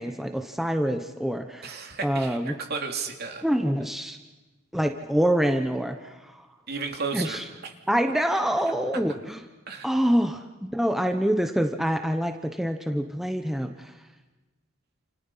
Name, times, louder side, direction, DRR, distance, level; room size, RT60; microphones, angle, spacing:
voice 1, 0.0-1.7 2.0-2.6 3.4-4.2 4.7-6.4 7.1-7.4 7.9-9.4 9.8-13.9, equal, ahead, 5 dB, 1.0 m, -26 dB
voice 2, 1.6-3.4 6.7-7.7 9.7-9.9, right 4 dB, 50° right, 3 dB, 3.1 m, -33 dB
29.5 x 29.0 x 5.7 m, 1.2 s
head